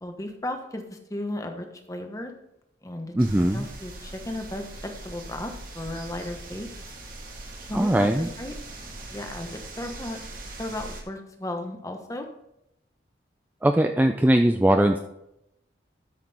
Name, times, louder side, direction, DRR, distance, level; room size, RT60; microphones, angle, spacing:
voice 1, 0.0-2.3 2.8-3.2 3.5-6.7 7.6-8.5 9.1-10.2 10.6-12.3, left 1 dB, 15° left, 4 dB, 1.0 m, -35 dB
voice 2, 3.2-3.7 7.7-8.3 13.6-15.0, right 1 dB, 10° right, 5 dB, 0.3 m, -20 dB
sound 1, 3.2-11.0, right 2 dB, 50° right, 1.6 m, -41 dB
13.0 x 6.1 x 3.4 m, 0.82 s
head